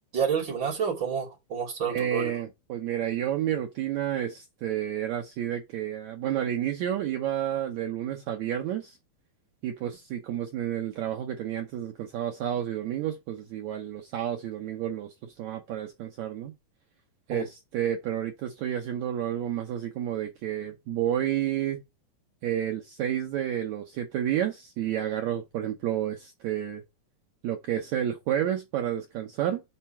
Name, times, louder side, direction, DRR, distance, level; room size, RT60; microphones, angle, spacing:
voice 1, 0.1-2.3 17.3-17.4, right 6 dB, 35° right, 3.1 m, -29 dB
voice 2, 1.9-9.0 9.6-16.5 17.3-21.8 22.4-26.8 27.4-29.6, right 11 dB, 80° right, 1.6 m, -30 dB
5.7 x 4.4 x 5.8 m
omnidirectional pair, 4.4 m